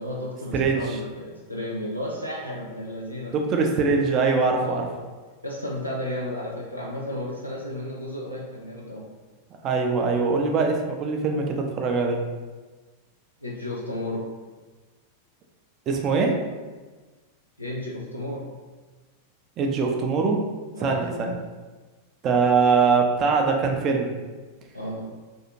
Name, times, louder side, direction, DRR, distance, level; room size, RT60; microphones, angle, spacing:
voice 1, 0.0-3.4 4.5-5.1 5.4-9.0 13.4-14.3 17.6-18.5 20.8-21.3 24.7-25.1, left 1 dB, 85° left, -4 dB, 0.3 m, -33 dB
voice 2, 0.5-1.0 3.3-4.9 9.6-12.2 15.9-16.4 19.6-20.4 20.8-21.4 22.2-24.1, right 4 dB, 35° right, 2 dB, 0.4 m, -22 dB
2.6 x 2.4 x 2.9 m, 1.3 s
figure-of-eight pair, 90°, 0 cm